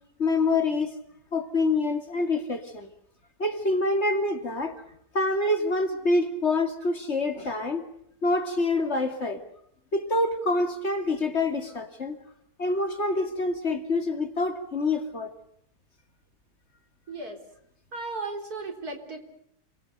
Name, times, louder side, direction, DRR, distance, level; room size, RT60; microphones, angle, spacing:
voice 1, 0.2-0.9 1.3-2.9 3.4-4.8 5.1-7.8 8.2-9.4 9.9-12.2 12.6-15.3, left 2 dB, 45° left, 7 dB, 2.7 m, -26 dB
voice 2, 17.1-17.4 17.9-19.2, right 3 dB, 70° right, 5 dB, 4.5 m, -36 dB
29.5 x 23.0 x 6.7 m, 0.72 s
omnidirectional pair, 1.7 m